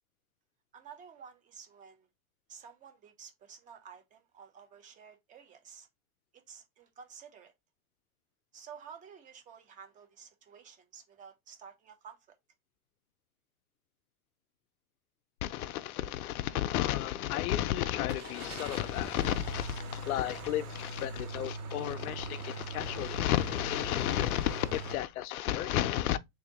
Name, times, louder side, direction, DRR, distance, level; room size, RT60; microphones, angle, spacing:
voice 1, 0.7-2.1 2.5-5.9 6.3-7.5 8.5-12.4, right 7 dB, 20° right, 0.7 m, -52 dB
voice 2, 15.4-26.2, left 13 dB, 75° left, 0.6 m, -32 dB
Car / Engine starting, 18.1-24.9, right 4 dB, 80° right, 1.4 m, -42 dB
3.6 x 2.7 x 3.8 m
hypercardioid pair, 135°, 44 cm